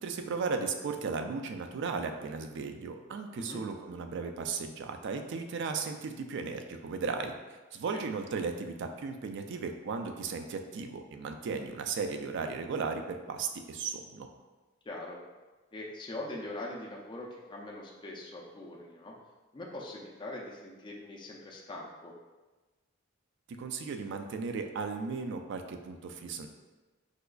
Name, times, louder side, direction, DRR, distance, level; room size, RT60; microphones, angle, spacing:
voice 1, 0.0-14.3 23.5-26.5, right 4 dB, 55° right, 6 dB, 0.3 m, -36 dB
voice 2, 14.9-15.2 15.7-19.1 19.5-22.1, left 1 dB, 20° left, -2 dB, 0.4 m, -42 dB
4.8 x 2.3 x 2.3 m, 1.2 s
head